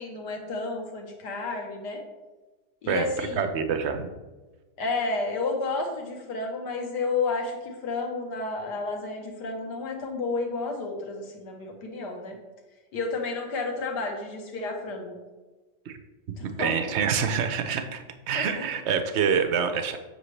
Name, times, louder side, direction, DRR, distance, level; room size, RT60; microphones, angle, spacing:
voice 1, 0.0-2.0 2.8-3.4 4.8-12.4 12.9-15.2 16.4-16.9 18.3-18.5, left 3 dB, 70° left, 2 dB, 1.8 m, -31 dB
voice 2, 2.9-4.1 15.9-16.0 16.4-20.0, right 7 dB, 70° right, 8 dB, 0.6 m, -26 dB
7.9 x 6.2 x 3.2 m, 1.2 s
omnidirectional pair, 1.8 m